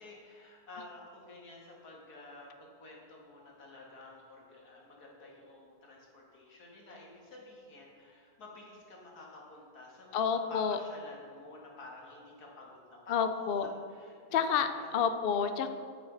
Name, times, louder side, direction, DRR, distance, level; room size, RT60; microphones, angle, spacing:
voice 1, 0.0-14.9, left 2 dB, 85° left, -2 dB, 2.5 m, -51 dB
voice 2, 10.1-10.8 13.1-13.7 14.3-14.7 14.9-15.7, left 7 dB, 60° left, 9 dB, 0.6 m, -29 dB
12.0 x 8.1 x 3.9 m, 2.2 s
omnidirectional pair, 1.6 m